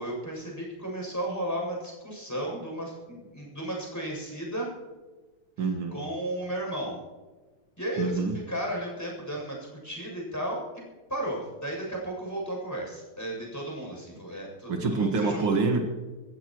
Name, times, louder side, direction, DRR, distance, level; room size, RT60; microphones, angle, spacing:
voice 1, 0.0-4.7 5.9-7.0 7.8-8.1 8.5-10.6 11.1-15.6, right 1 dB, 5° left, -2 dB, 7.2 m, -34 dB
voice 2, 5.6-6.0 8.0-8.4 14.7-15.8, right 4 dB, 85° right, 3 dB, 2.6 m, -26 dB
27.5 x 15.5 x 3.1 m, 1.2 s
omnidirectional pair, 2.3 m